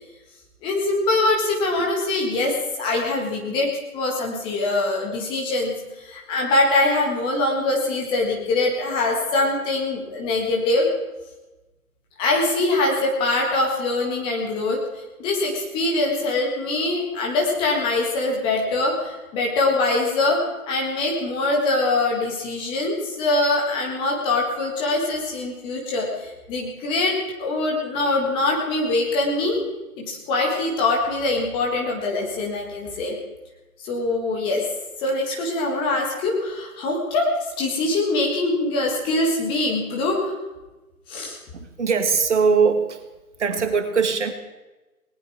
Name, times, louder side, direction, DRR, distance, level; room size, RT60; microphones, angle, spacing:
voice 1, 0.6-10.9 12.2-29.6 30.0-33.1 33.8-34.7 35.0-40.4 41.1-41.4, left 2 dB, 10° left, -1 dB, 1.6 m, -23 dB
voice 2, 41.5-43.0 43.4-44.3, right 5 dB, 50° right, 7 dB, 1.7 m, -21 dB
20.0 x 18.5 x 3.6 m, 1.1 s
figure-of-eight pair, 140°, 44 cm